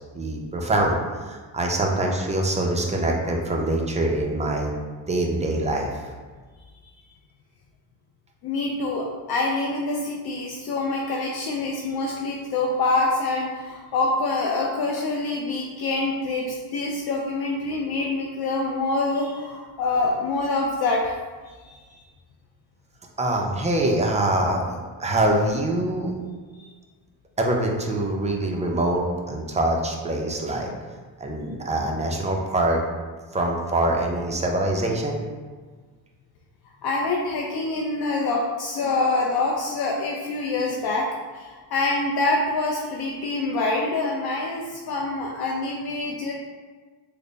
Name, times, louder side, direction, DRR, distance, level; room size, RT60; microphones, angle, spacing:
voice 1, 0.1-1.0 1.3-4.7 5.1-5.9 23.2-26.2 27.4-30.7 31.2-32.8 33.3-35.2, right 1 dB, 15° right, 0 dB, 0.4 m, -24 dB
voice 2, 8.4-21.1 21.5-21.8 26.5-26.7 36.8-41.1 41.3-46.3, left 2 dB, 60° left, -2 dB, 0.5 m, -26 dB
3.3 x 2.1 x 3.8 m, 1.4 s
cardioid pair, 110°, 43 cm